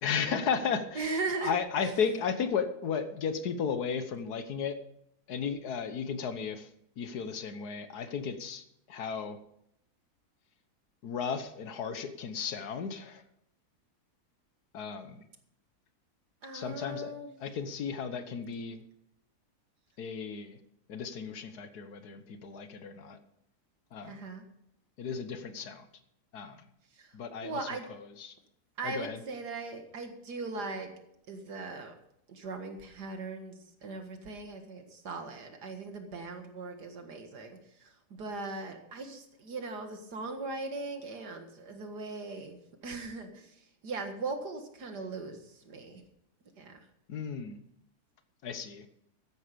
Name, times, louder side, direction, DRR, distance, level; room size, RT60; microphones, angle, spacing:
voice 1, 0.0-4.8 5.3-6.7 7.0-9.4 11.0-13.2 14.7-15.2 16.5-17.1 17.4-18.8 20.0-20.6 20.9-23.2 23.9-24.2 25.0-25.9 26.3-26.6 27.1-28.3 28.8-29.2 47.1-47.6 48.4-48.9, left 6 dB, 75° left, 11 dB, 1.6 m, -34 dB
voice 2, 1.0-1.5 1.8-1.9 16.4-17.3 24.0-24.4 27.0-27.1 27.4-27.9 28.8-30.9 31.3-31.9 32.3-46.0 46.6-46.8, right 3 dB, 85° right, 6 dB, 2.3 m, -39 dB
13.5 x 10.5 x 5.2 m, 0.76 s
omnidirectional pair, 1.7 m